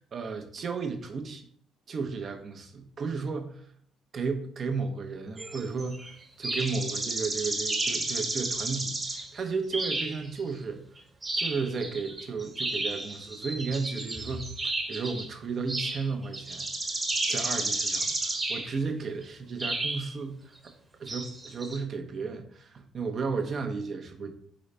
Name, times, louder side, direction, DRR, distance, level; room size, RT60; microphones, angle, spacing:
voice 1, 0.1-1.5 1.9-3.6 4.1-10.8 11.3-16.7 17.3-20.7 21.0-24.3, right 4 dB, 50° right, 5 dB, 0.7 m, -34 dB
sound 1, 5.4-6.1 6.4-9.4 9.7-10.5 11.0-15.3 15.7-18.8 19.6-20.1 21.1-21.8, right 2 dB, 25° right, 1.1 m, -32 dB
3.9 x 3.9 x 3.3 m, 0.63 s
supercardioid pair, 70°, 0 cm